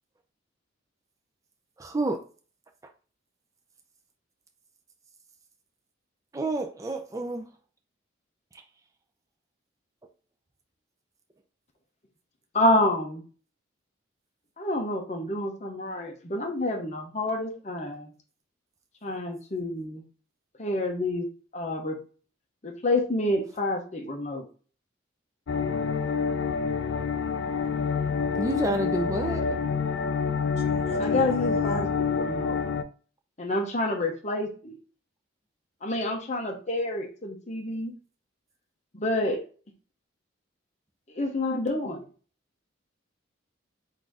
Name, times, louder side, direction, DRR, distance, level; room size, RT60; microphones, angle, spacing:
voice 1, 1.8-2.3 6.3-7.5 8.5-8.6 28.4-29.6, right 2 dB, 15° right, 0.4 m, -29 dB
voice 2, 12.5-13.2 14.6-18.1 19.0-20.0 20.6-21.3 21.5-22.0 22.6-24.4 31.0-32.5 33.4-34.8 35.8-37.9 38.9-39.4 41.1-42.0, left 1 dB, 35° left, 0.8 m, -28 dB
sound 1, 25.5-32.8, left 5 dB, 70° left, 0.4 m, -27 dB
voice 3, 30.6-31.9, equal, 30° right, 1.2 m, -39 dB
4.0 x 2.6 x 4.7 m
head